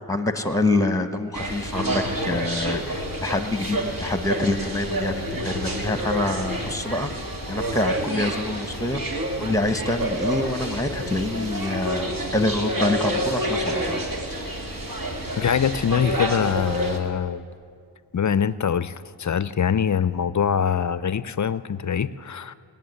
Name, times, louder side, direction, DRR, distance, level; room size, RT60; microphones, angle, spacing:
voice 1, 0.1-7.1 7.5-9.0 9.4-14.0, left 2 dB, 5° left, 9 dB, 1.2 m, -26 dB
sound 1, 1.3-17.0, right 1 dB, 50° right, 2.2 m, -28 dB
voice 2, 15.4-17.4 18.1-22.5, left 7 dB, 40° left, 16 dB, 0.6 m, -24 dB
19.0 x 7.3 x 9.5 m, 2.2 s
cardioid pair, 50°, 45 cm